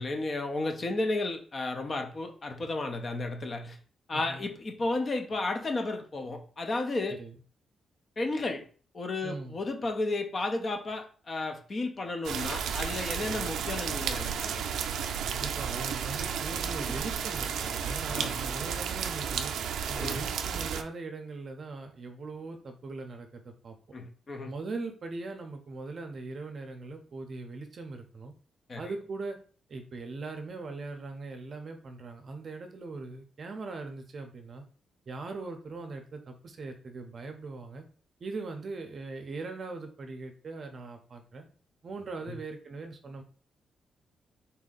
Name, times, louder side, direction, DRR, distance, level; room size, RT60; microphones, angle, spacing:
voice 1, 0.0-3.8 4.1-7.2 8.2-8.6 8.9-14.6 16.9-17.0 18.1-18.4 19.9-20.2 23.9-24.5 28.7-28.8, left 2 dB, 30° left, 6 dB, 0.5 m, -33 dB
voice 2, 4.1-4.5 7.2-7.3 9.2-9.6 13.2-13.6 15.2-19.5 19.9-23.8 24.4-28.3 28.8-29.4 29.7-34.6 35.1-37.9 38.2-41.5 41.8-43.2, right 3 dB, 35° right, 5 dB, 0.6 m, -40 dB
sound 1, 12.2-20.8, right 7 dB, 90° right, 0.4 m, -32 dB
4.0 x 2.7 x 3.8 m, 0.41 s
wide cardioid pair, 175°, 0 cm